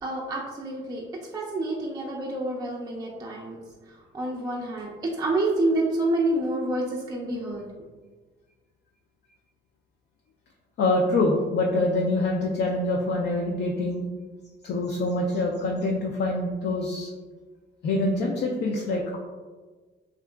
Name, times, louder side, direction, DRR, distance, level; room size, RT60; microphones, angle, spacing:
voice 1, 0.0-1.0 1.3-3.6 4.1-7.6, right 2 dB, 20° right, -3 dB, 0.4 m, -28 dB
voice 2, 10.8-14.0 14.6-17.1 17.8-19.2, left 2 dB, 60° left, -1 dB, 0.4 m, -25 dB
2.7 x 2.5 x 2.2 m, 1.4 s
cardioid pair, 90°, 20 cm